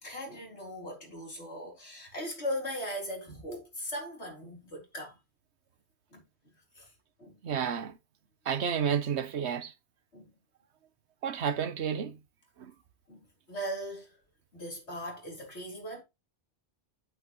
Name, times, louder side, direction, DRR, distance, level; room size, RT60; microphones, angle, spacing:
voice 1, 0.0-5.2 6.1-6.2 6.8-6.9 7.2-7.3 10.1-10.3 13.1-13.2 13.5-14.2 14.5-16.0, equal, 90° left, 4.1 m, -39 dB
voice 2, 7.4-8.0 8.5-9.7 11.2-12.2 12.6-12.7, right 7 dB, 90° right, 1.2 m, -31 dB
8.4 x 8.2 x 3.0 m
omnidirectional pair, 1.1 m